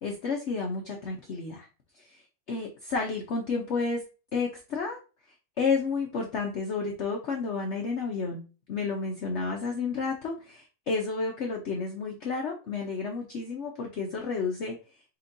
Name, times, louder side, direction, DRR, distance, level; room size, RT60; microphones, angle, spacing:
voice 1, 0.0-1.7 1.9-2.2 2.5-4.0 4.3-5.0 5.6-8.4 8.7-14.8, left 4 dB, 55° left, 1 dB, 0.9 m, -31 dB
4.3 x 4.3 x 2.6 m, 0.33 s
omnidirectional pair, 1.7 m